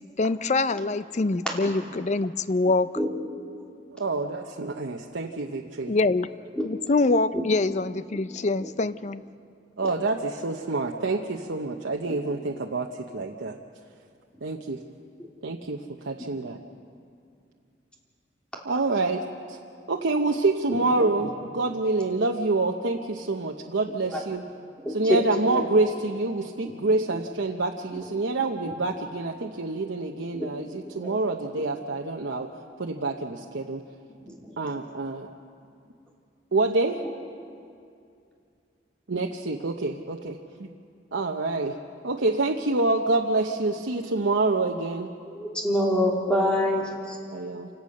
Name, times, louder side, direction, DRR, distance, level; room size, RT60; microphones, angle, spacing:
voice 1, 0.2-2.9 5.9-6.3 6.6-9.2, left 3 dB, 40° left, 14 dB, 0.5 m, -24 dB
voice 2, 3.9-5.9 9.8-13.6 14.4-14.8 15.4-16.6 18.6-19.6 19.9-24.4 24.9-32.5 32.8-33.8 34.6-35.3 36.5-37.0 39.1-40.7 41.1-41.8 42.0-45.1 47.3-47.7, right 3 dB, 90° right, 1 dB, 0.9 m, -27 dB
voice 3, 20.7-21.0 24.1-24.2 24.8-25.2 25.5-25.6 26.6-26.7 30.3-30.5 30.9-31.1 34.3-34.5 45.3-47.2, left 1 dB, 5° left, -2 dB, 3.2 m, -26 dB
27.5 x 17.0 x 6.5 m, 2.5 s
head